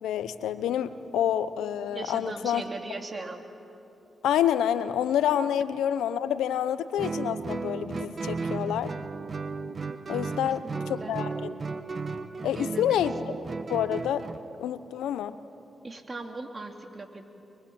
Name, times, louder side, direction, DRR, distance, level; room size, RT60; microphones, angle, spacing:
voice 1, 0.0-2.6 4.2-8.9 10.1-11.5 12.4-13.1 13.7-14.3 14.6-15.4, left 10 dB, 90° left, 13 dB, 0.8 m, -28 dB
voice 2, 1.9-3.4 10.4-11.2 12.5-13.1 15.8-17.3, right 3 dB, 35° right, 4 dB, 3.0 m, -39 dB
Guitar, 7.0-14.5, right 4 dB, 50° right, 1.1 m, -34 dB
23.5 x 23.0 x 8.7 m, 2.9 s
supercardioid pair, 50°, 0 cm